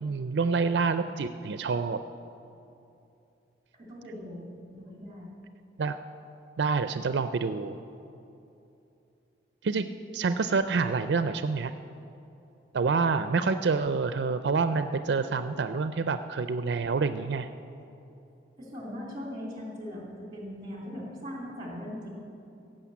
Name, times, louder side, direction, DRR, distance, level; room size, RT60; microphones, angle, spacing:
voice 1, 0.0-2.0 5.8-6.0 6.6-7.8 9.6-11.7 12.7-17.5, right 4 dB, 80° right, 10 dB, 0.4 m, -27 dB
voice 2, 3.7-4.5 4.7-5.3 18.6-22.1, equal, 25° right, -3 dB, 3.2 m, -40 dB
16.0 x 6.4 x 8.4 m, 2.8 s
head